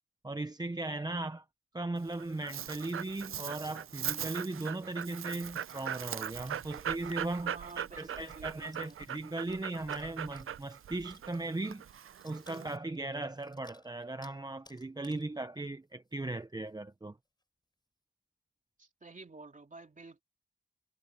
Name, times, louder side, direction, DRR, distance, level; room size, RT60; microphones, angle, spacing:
voice 1, 0.2-1.4 1.7-11.8 12.2-17.2, right 2 dB, 20° right, 0.6 m, -38 dB
Dog, 2.0-12.8, right 9 dB, 80° right, 0.5 m, -40 dB
sound 1, 3.5-4.0 4.4-14.4 14.7-15.3 15.7-15.8 16.1-16.4 16.7-16.8 17.3-17.4, left 1 dB, 20° left, 6.4 m, -63 dB
voice 2, 7.4-9.0 18.8-20.2, right 3 dB, 40° right, 3.0 m, -51 dB
wide cardioid pair, 110°, 21 cm